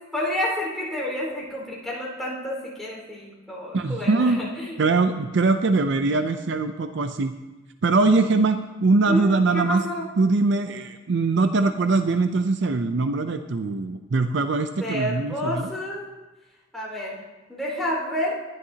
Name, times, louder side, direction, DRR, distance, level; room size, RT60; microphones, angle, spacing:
voice 1, 0.1-4.7 9.1-10.0 14.8-16.1 16.7-17.2 17.5-18.3, left 1 dB, ahead, -5 dB, 4.5 m, -29 dB
voice 2, 3.7-4.5 4.8-7.3 7.8-9.8 10.2-15.7, right 3 dB, 60° right, 8 dB, 0.5 m, -22 dB
19.5 x 11.0 x 2.8 m, 1.1 s
head